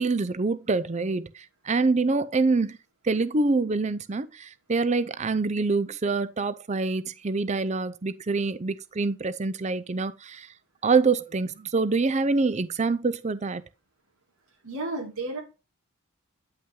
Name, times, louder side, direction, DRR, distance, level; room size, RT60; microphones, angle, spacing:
voice 1, 0.0-2.8 3.0-10.5 10.8-13.6, right 3 dB, 30° right, 0.5 m, -25 dB
voice 2, 14.6-15.4, right 2 dB, 90° right, 2.8 m, -32 dB
9.7 x 5.7 x 3.7 m
head